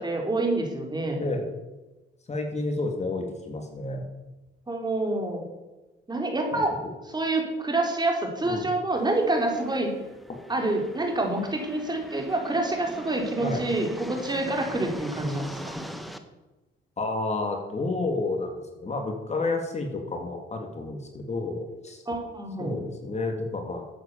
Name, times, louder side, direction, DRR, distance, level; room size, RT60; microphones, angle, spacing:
voice 1, 0.0-1.2 4.7-5.4 6.1-6.7 7.1-9.9 10.5-15.8 22.1-22.7, right 2 dB, 20° right, 1 dB, 3.8 m, -27 dB
voice 2, 1.2-1.5 2.3-4.0 6.5-6.6 8.4-8.7 13.4-13.6 17.0-22.0 22.6-23.8, left 2 dB, 35° left, 4 dB, 2.5 m, -30 dB
sound 1, 9.0-16.2, equal, ahead, 1.4 m, -41 dB
12.5 x 8.5 x 7.0 m, 1.1 s
cardioid pair, 90°, 20 cm